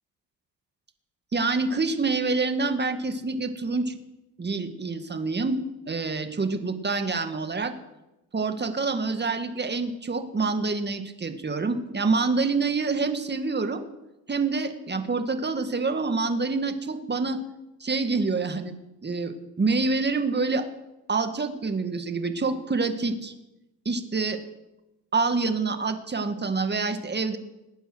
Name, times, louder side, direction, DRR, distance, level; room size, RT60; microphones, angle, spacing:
voice 1, 1.3-4.0 4.4-7.7 8.3-13.8 14.3-17.4 17.8-18.7 19.0-20.7 21.1-23.3 23.9-24.4 25.1-27.4, right 3 dB, 20° right, 8 dB, 1.9 m, -27 dB
19.0 x 9.2 x 6.2 m, 0.97 s
supercardioid pair, 70°, 47 cm